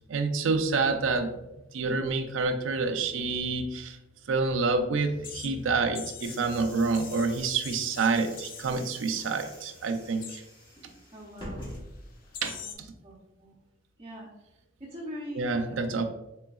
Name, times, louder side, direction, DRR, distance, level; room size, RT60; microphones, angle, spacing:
voice 1, 0.1-1.3 1.7-4.0 4.3-10.4 12.4-12.6 15.4-16.0, right 4 dB, 85° right, 7 dB, 0.5 m, -28 dB
sound 1, 5.0-6.5 6.8-8.9 9.2-9.5 9.8-10.5 11.2-11.3 11.9-12.0 12.3-12.8, left 8 dB, 45° left, 0.4 m, -44 dB
sound 2, 6.2-12.4, equal, 25° left, 1.1 m, -46 dB
voice 2, 11.1-11.7 12.6-12.7 13.0-13.6 14.0-14.3 14.8-16.0, equal, 25° right, -5 dB, 0.7 m, -42 dB
3.8 x 3.8 x 2.3 m, 0.93 s
head